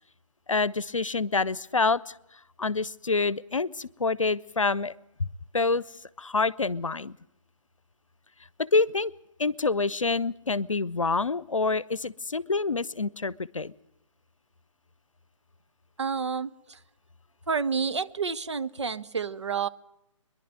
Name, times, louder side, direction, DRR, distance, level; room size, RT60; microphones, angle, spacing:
voice 1, 0.5-2.1 2.6-4.9 5.5-5.8 6.2-7.2 8.6-9.1 9.4-13.7, left 3 dB, 75° left, 21 dB, 0.7 m, -27 dB
voice 2, 16.0-16.8 17.5-19.7, right 5 dB, 60° right, 12 dB, 0.8 m, -29 dB
24.5 x 11.0 x 9.6 m, 0.90 s
figure-of-eight pair, 140°, 17 cm